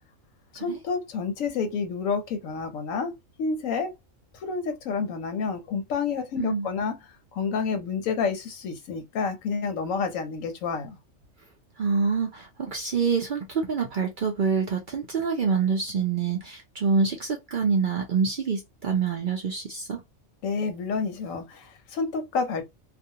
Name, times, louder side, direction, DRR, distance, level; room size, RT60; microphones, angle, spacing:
voice 1, 0.5-3.1 3.4-3.9 4.4-7.0 7.3-11.0 20.4-22.6, left 5 dB, 85° left, 1.0 m, -29 dB
voice 2, 11.8-20.0, right 5 dB, 60° right, 0.5 m, -26 dB
2.4 x 2.2 x 2.7 m
omnidirectional pair, 1.4 m